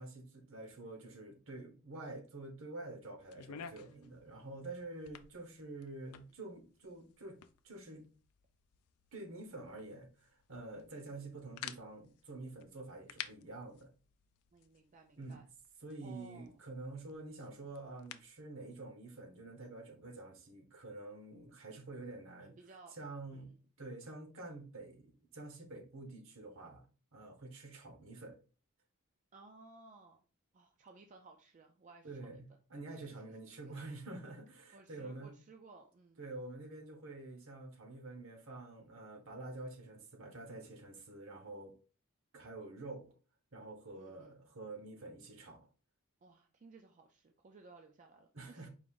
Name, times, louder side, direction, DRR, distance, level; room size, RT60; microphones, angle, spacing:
voice 1, 0.0-8.1 9.1-13.9 15.2-15.4 15.8-22.5 22.9-23.5 23.8-26.8 27.1-28.4 32.0-35.3 36.2-41.7 42.3-43.1 43.5-45.7 48.3-48.7, right 2 dB, 60° right, 1.0 m, -48 dB
sound 1, 3.2-18.4, left 9 dB, 85° left, 0.4 m, -54 dB
voice 2, 14.5-15.5 16.0-16.6 22.4-23.0 23.3-23.6 29.3-30.2 30.5-32.4 33.1-33.3 33.7-34.0 34.7-36.2 43.9-44.4 46.2-48.7, right 3 dB, 35° right, 0.3 m, -58 dB
4.7 x 2.5 x 3.6 m
head